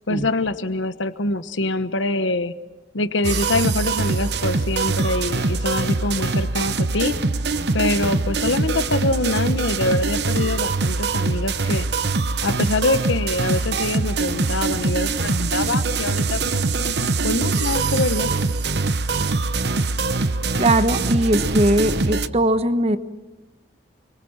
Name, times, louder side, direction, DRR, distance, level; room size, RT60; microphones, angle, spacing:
voice 1, 0.1-2.5 2.9-7.2 7.7-11.9 12.4-16.8 17.2-18.3, left 2 dB, 85° left, 11 dB, 1.2 m, -24 dB
sound 1, 3.2-22.3, right 3 dB, 60° right, 0.9 m, -23 dB
voice 2, 20.6-23.0, right 1 dB, 30° right, 11 dB, 1.1 m, -20 dB
29.5 x 23.5 x 7.4 m, 1.1 s
head